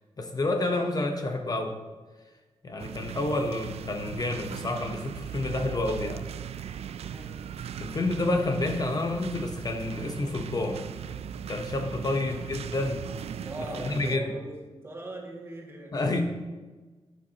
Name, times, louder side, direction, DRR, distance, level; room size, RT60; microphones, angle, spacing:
voice 1, 0.2-1.8 2.6-6.2 7.8-10.8 11.5-13.0 13.8-14.3 15.9-16.2, left 2 dB, 40° left, 4 dB, 0.9 m, -29 dB
sound 1, 2.8-14.2, right 8 dB, 80° right, 0.4 m, -38 dB
voice 2, 7.0-7.4 12.2-12.3 13.4-15.9, right 2 dB, 25° right, -1 dB, 2.0 m, -39 dB
11.5 x 9.5 x 2.9 m, 1.3 s
wide cardioid pair, 105°, 10 cm